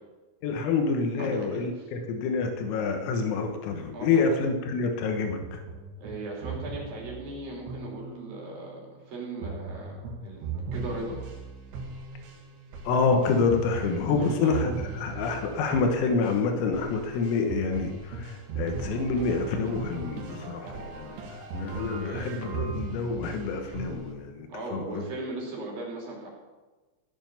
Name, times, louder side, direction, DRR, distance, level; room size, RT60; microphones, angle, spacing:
voice 1, 0.4-5.6 12.9-21.2 21.5-25.1, left 4 dB, 90° left, 4 dB, 3.9 m, -27 dB
voice 2, 1.2-1.9 3.9-4.4 6.0-11.2 14.1-15.1 20.6-20.9 21.9-22.6 24.5-26.3, right 2 dB, 50° right, -2 dB, 4.3 m, -38 dB
sound 1, 5.4-8.5 9.4-24.1, right 4 dB, 65° right, 3.8 m, -38 dB
15.5 x 7.1 x 7.0 m, 1.2 s
omnidirectional pair, 6.0 m